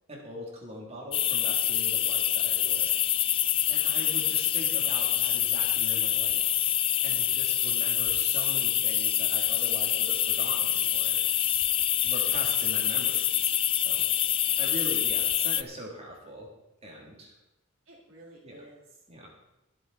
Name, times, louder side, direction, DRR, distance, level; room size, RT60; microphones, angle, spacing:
voice 1, 0.1-2.9 3.7-6.8 7.0-11.4 12.0-14.0 14.6-16.5 16.8-17.3 18.4-18.5 19.1-19.3, equal, 30° right, -2 dB, 3.0 m, -42 dB
sound 1, 1.1-15.6, left 11 dB, 25° left, 0.3 m, -26 dB
voice 2, 4.8-5.3 17.8-18.8, right 1 dB, 70° right, -5 dB, 3.2 m, -53 dB
23.0 x 7.8 x 4.2 m, 0.93 s
head